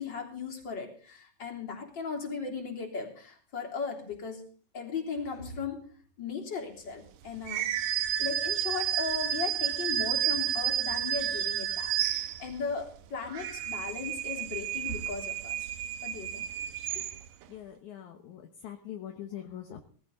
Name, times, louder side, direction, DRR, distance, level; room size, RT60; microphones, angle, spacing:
voice 1, 0.0-4.4 4.7-5.8 6.2-7.7 8.2-15.7 16.0-16.5 17.0-17.1, left 5 dB, 35° left, 1 dB, 3.8 m, -37 dB
sound 1, 7.4-12.7 13.2-17.4, right 11 dB, 80° right, 2.5 m, -31 dB
voice 2, 17.5-19.8, left 10 dB, 65° left, 4 dB, 2.5 m, -43 dB
19.0 x 15.5 x 4.0 m, 0.43 s
omnidirectional pair, 3.9 m